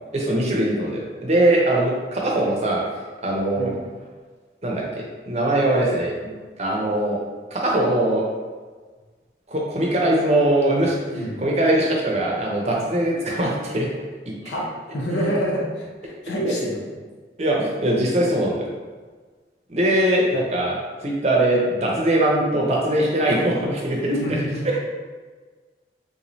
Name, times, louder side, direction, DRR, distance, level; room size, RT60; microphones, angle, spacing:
voice 1, 0.1-2.8 3.2-3.7 4.6-6.3 6.6-7.2 7.5-8.2 9.5-11.0 11.4-13.9 14.3-14.4 16.4-16.5 17.4-18.7 19.7-24.1 24.6-24.8, right 1 dB, 35° right, -2 dB, 0.6 m, -21 dB
voice 2, 14.4-17.0 24.0-24.6, equal, 85° left, -2 dB, 0.8 m, -27 dB
3.6 x 3.0 x 2.6 m, 1.4 s
head